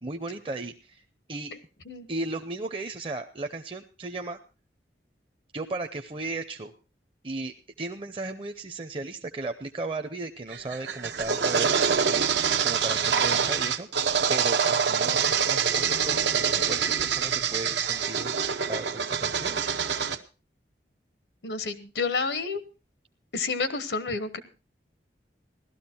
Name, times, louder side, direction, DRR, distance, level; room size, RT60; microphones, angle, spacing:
voice 1, 0.0-1.0 1.3-1.5 2.1-4.4 5.5-6.7 7.2-11.8 12.6-13.9 14.3-19.6, right 3 dB, 30° right, 5 dB, 0.6 m, -35 dB
sound 1, 10.5-20.2, right 7 dB, 85° right, 0.9 m, -25 dB
voice 2, 21.4-22.6 23.3-24.4, left 4 dB, 90° left, 12 dB, 1.2 m, -29 dB
16.0 x 12.5 x 4.4 m, 0.32 s
head